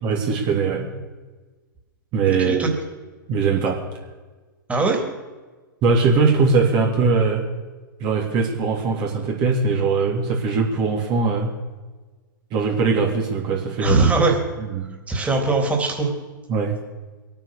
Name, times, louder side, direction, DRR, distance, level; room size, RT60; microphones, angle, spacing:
voice 1, 0.0-0.9 2.1-2.6 3.3-3.8 5.8-7.4 8.0-11.5 12.5-14.1 14.6-14.9 16.5-16.8, right 4 dB, 40° right, -1 dB, 3.1 m, -21 dB
voice 2, 2.3-2.7 4.7-5.0 13.8-14.4 15.1-16.1, right 3 dB, 10° right, 1 dB, 3.5 m, -20 dB
22.5 x 9.0 x 6.7 m, 1.3 s
hypercardioid pair, 110°, 11 cm